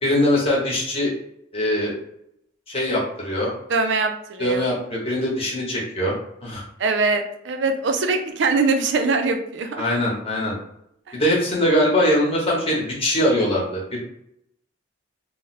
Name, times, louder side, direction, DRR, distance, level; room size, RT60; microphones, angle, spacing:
voice 1, 0.0-1.1 1.5-1.9 2.7-3.5 4.4-6.2 6.4-6.6 9.8-10.5 11.1-14.0, left 1 dB, 30° left, -4 dB, 0.9 m, -22 dB
voice 2, 3.7-4.7 6.8-9.8 11.1-11.2, right 3 dB, 65° right, 6 dB, 0.4 m, -22 dB
2.6 x 2.1 x 4.0 m, 0.75 s
head